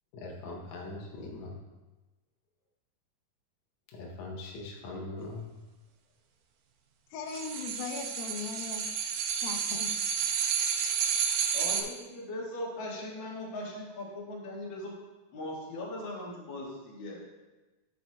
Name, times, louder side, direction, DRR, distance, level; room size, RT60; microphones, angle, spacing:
voice 1, 0.1-1.6 3.9-5.5 10.7-11.6, left 2 dB, 70° left, -1 dB, 1.8 m, -42 dB
voice 2, 7.1-8.9 9.4-9.9, left 5 dB, 85° left, 3 dB, 2.5 m, -38 dB
sound 1, 7.3-11.8, right 7 dB, 85° right, 2.5 m, -31 dB
voice 3, 11.5-14.9 15.3-17.2, left 1 dB, 45° left, -4 dB, 1.7 m, -39 dB
11.0 x 6.2 x 2.2 m, 1.1 s
omnidirectional pair, 4.1 m